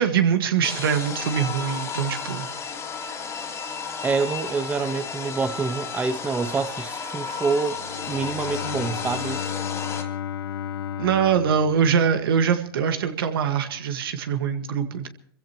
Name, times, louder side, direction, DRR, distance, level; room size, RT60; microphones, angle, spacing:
voice 1, 0.0-2.5 11.0-15.1, right 7 dB, 70° right, 1.9 m, -23 dB
sound 1, 0.6-10.0, left 5 dB, 20° left, 2.8 m, -33 dB
voice 2, 4.0-7.8 8.1-9.4, right 4 dB, 10° right, 0.6 m, -26 dB
Bowed string instrument, 7.7-12.6, left 9 dB, 70° left, 0.9 m, -33 dB
26.5 x 15.5 x 3.1 m
hypercardioid pair, 115°, 13 cm